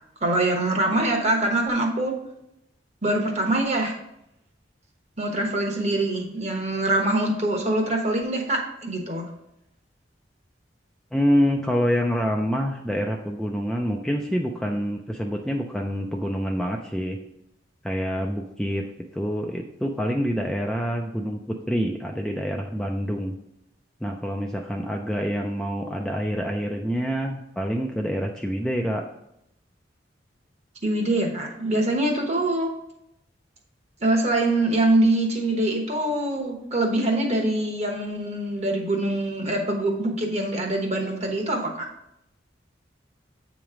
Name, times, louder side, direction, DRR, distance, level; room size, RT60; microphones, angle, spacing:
voice 1, 0.2-2.1 3.0-3.9 5.2-9.2 30.8-32.7 34.0-41.9, right 1 dB, 40° right, 2 dB, 1.1 m, -24 dB
voice 2, 11.1-17.2 17.8-18.8 19.1-23.3 24.0-29.0, equal, 5° left, 1 dB, 0.3 m, -26 dB
8.1 x 3.1 x 4.9 m, 0.81 s
head